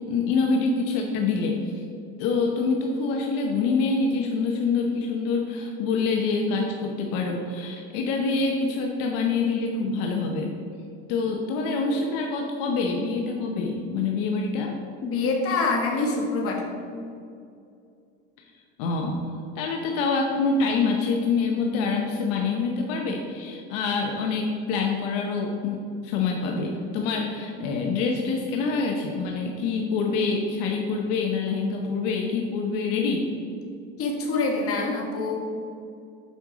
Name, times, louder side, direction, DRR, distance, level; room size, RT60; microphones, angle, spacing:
voice 1, 0.0-1.8 2.2-10.5 11.1-14.7 18.8-19.2 19.6-33.3, left 4 dB, 80° left, 2 dB, 0.9 m, -26 dB
voice 2, 15.0-16.6 34.0-35.4, left 3 dB, 50° left, 0 dB, 1.7 m, -25 dB
7.8 x 5.3 x 4.9 m, 2.5 s
supercardioid pair, 110°, 30 cm